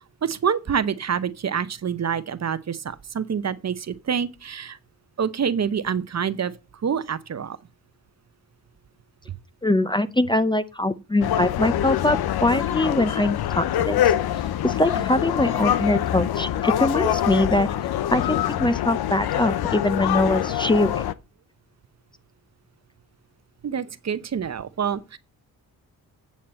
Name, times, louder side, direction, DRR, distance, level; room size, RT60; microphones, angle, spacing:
voice 1, 0.2-4.8 5.2-6.5 6.8-7.6 23.6-25.2, right 7 dB, 45° right, 0.8 m, -26 dB
voice 2, 9.6-14.1 14.6-17.7 18.1-21.0, left 1 dB, 15° left, 0.7 m, -22 dB
sound 1, 11.2-21.1, left 11 dB, 80° left, 0.7 m, -24 dB
8.7 x 7.3 x 4.2 m
cardioid pair, 80°, 37 cm